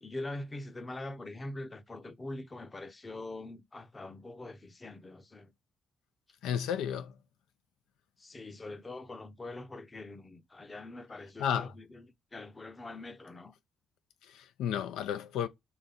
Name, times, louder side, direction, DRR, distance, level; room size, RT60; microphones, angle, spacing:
voice 1, 0.0-5.5 8.2-13.5, left 2 dB, 25° left, 0.7 m, -43 dB
voice 2, 6.4-7.1 11.4-11.7 14.3-15.5, left 9 dB, 90° left, 0.4 m, -32 dB
4.0 x 3.2 x 3.9 m
cardioid pair, 90°, 0 cm